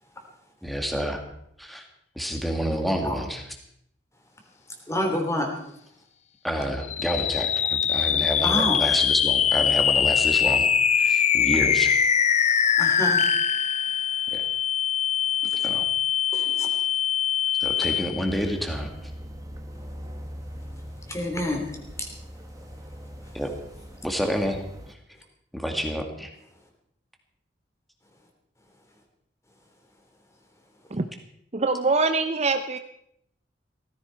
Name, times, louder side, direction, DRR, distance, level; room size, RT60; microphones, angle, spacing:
voice 1, 0.6-1.2 1.7-1.8 2.2-3.4 6.4-10.7 11.0-11.9 14.3-14.4 15.6-15.8 17.6-18.9 23.3-23.5 24.0-24.6 25.5-26.3, equal, ahead, 3 dB, 2.1 m, -28 dB
voice 2, 4.9-5.5 8.4-8.8 12.8-13.2 16.3-16.7 21.1-21.6 22.0-22.1, left 1 dB, 15° left, 3 dB, 3.1 m, -27 dB
sound 1, 6.8-18.4, left 8 dB, 40° left, 0.6 m, -23 dB
sound 2, 18.3-24.9, equal, 20° right, 1.5 m, -41 dB
voice 3, 31.5-32.8, right 3 dB, 35° right, 8 dB, 0.7 m, -23 dB
17.5 x 15.0 x 4.6 m, 0.74 s
head